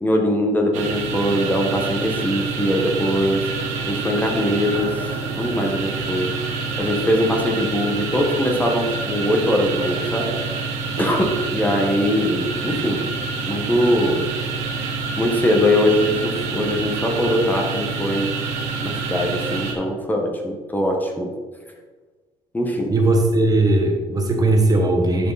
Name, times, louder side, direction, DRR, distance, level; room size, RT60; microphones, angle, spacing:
voice 1, 0.0-3.4 3.9-4.9 5.3-6.3 6.8-10.3 11.0-13.0 13.4-14.3 15.2-18.3 18.8-21.3 22.5-22.9, equal, 15° left, 1 dB, 1.5 m, -21 dB
sound 1, 0.7-19.7, right 4 dB, 90° right, 1.4 m, -27 dB
voice 2, 22.9-25.3, right 2 dB, 30° right, 3 dB, 1.2 m, -18 dB
10.5 x 5.0 x 4.2 m, 1.4 s
cardioid pair, 110°, 12 cm